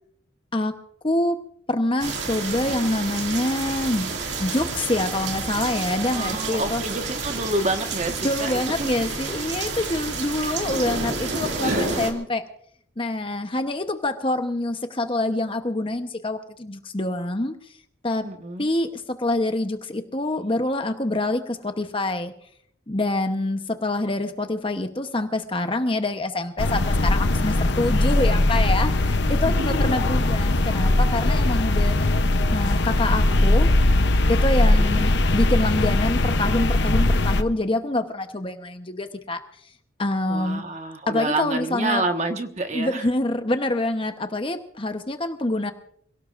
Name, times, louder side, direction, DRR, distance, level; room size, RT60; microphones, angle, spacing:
voice 1, 1.0-1.4 1.7-4.1 4.4-6.8 8.2-12.4 13.0-17.5 18.0-18.3 18.6-22.3 22.9-32.0 32.5-33.7 34.3-39.4 40.0-40.7 41.1-42.0 42.7-45.7, left 2 dB, 25° left, 7 dB, 0.9 m, -26 dB
sound 1, 2.0-12.1, right 3 dB, 65° right, 2.3 m, -29 dB
voice 2, 6.1-8.9 11.6-12.2 18.2-18.7 29.4-29.7 34.7-35.0 40.3-43.1, right 2 dB, 35° right, 5 dB, 1.4 m, -28 dB
sound 2, 26.6-37.4, left 2 dB, 60° left, 0.8 m, -20 dB
27.5 x 17.5 x 2.5 m, 0.66 s
head